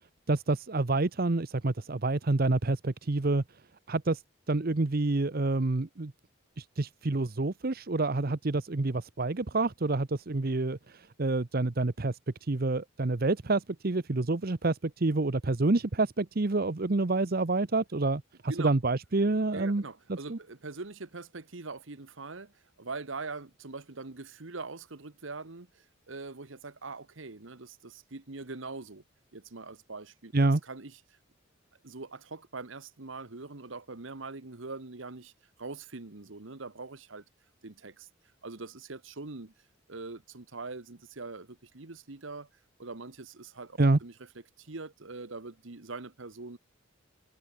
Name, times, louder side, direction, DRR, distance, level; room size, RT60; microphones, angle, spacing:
voice 1, 0.3-3.4 3.9-4.2 4.5-6.1 6.6-19.8 20.1-20.4 30.3-30.6 43.8-44.0, right 2 dB, 50° right, 0.8 m, -28 dB
voice 2, 19.5-29.0 29.3-30.3 30.6-31.0 31.8-35.3 35.6-37.2 37.6-38.1 38.4-39.5 39.9-42.5 42.8-44.1 44.6-46.6, right 3 dB, 70° right, 1.3 m, -42 dB
head